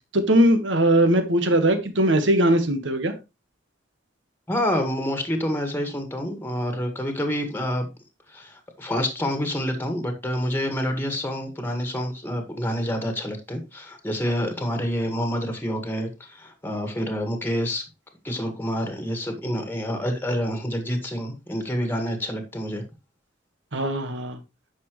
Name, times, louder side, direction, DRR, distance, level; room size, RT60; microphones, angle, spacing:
voice 1, 0.1-3.1 23.7-24.4, right 1 dB, 75° right, 1.6 m, -20 dB
voice 2, 4.5-7.8 8.3-17.8 18.2-22.8, equal, 10° left, 1.7 m, -27 dB
9.7 x 6.2 x 3.1 m
head